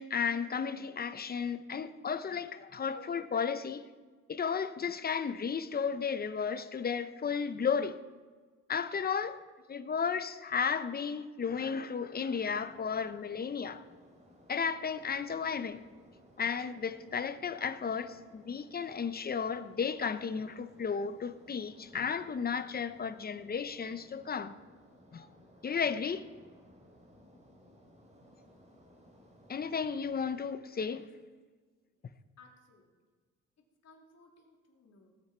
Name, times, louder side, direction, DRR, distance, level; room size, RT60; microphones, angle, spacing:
voice 1, 0.0-3.8 4.3-8.0 8.7-9.4 9.7-13.8 14.5-15.8 16.4-24.6 25.1-25.3 25.6-26.2 29.5-31.0, left 6 dB, 30° left, 0.8 m, -34 dB
sound 1, 12.3-30.4, equal, 25° right, 4.3 m, -60 dB
voice 2, 32.4-32.9 33.8-35.1, left 3 dB, 60° left, 3.4 m, -60 dB
19.0 x 9.1 x 4.4 m
cardioid pair, 90°, 30 cm